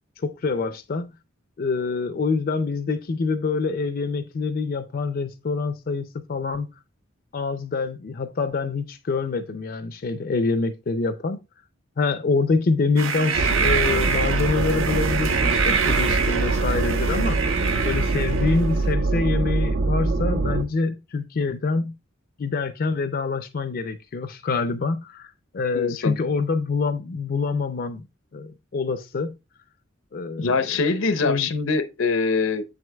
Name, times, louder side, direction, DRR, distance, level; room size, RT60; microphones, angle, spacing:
voice 1, 0.2-1.1 1.6-6.7 7.3-11.4 12.0-17.4 17.8-22.0 22.4-28.1 28.3-29.3 30.1-30.8 31.1-31.5, left 4 dB, 45° left, 0.4 m, -26 dB
sound 1, 13.0-18.7, right 6 dB, 85° right, 0.8 m, -26 dB
sound 2, 13.3-20.6, right 3 dB, 55° right, 0.4 m, -24 dB
voice 2, 25.7-26.2 30.4-32.6, left 4 dB, 85° left, 0.7 m, -23 dB
7.1 x 6.2 x 2.2 m
head